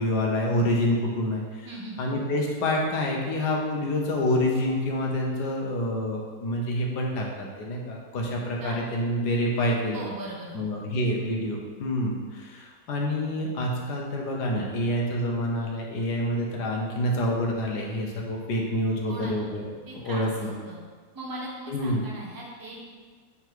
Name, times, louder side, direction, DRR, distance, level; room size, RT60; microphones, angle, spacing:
voice 1, 0.0-1.7 2.0-10.0 10.5-19.7 20.0-20.5 21.7-22.0, left 1 dB, 65° left, -1 dB, 1.5 m, -27 dB
voice 2, 1.6-2.0 8.6-8.9 9.9-10.7 19.1-19.3 19.9-20.8 21.1-22.9, right 1 dB, 20° right, -3 dB, 0.6 m, -39 dB
6.8 x 3.7 x 4.6 m, 1.5 s
omnidirectional pair, 2.0 m